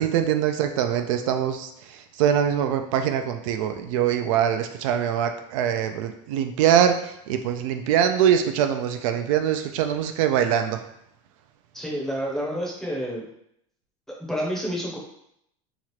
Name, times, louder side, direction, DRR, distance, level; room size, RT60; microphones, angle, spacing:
voice 1, 0.0-10.8, right 9 dB, 90° right, 7 dB, 0.4 m, -23 dB
voice 2, 11.7-13.2 14.3-15.0, equal, ahead, -4 dB, 0.6 m, -29 dB
2.9 x 2.4 x 3.1 m, 0.74 s
cardioid pair, 160°, 16 cm